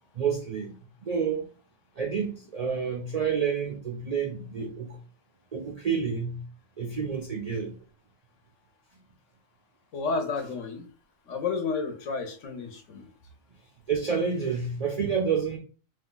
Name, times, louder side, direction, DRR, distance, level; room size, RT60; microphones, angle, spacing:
voice 1, 0.1-1.4 2.0-5.0 5.5-6.4 6.8-7.7 13.9-15.6, right 6 dB, 70° right, 1 dB, 0.3 m, -29 dB
voice 2, 9.9-10.9 11.3-13.1, left 4 dB, 70° left, 5 dB, 1.0 m, -31 dB
2.8 x 2.3 x 3.8 m, 0.39 s
omnidirectional pair, 1.3 m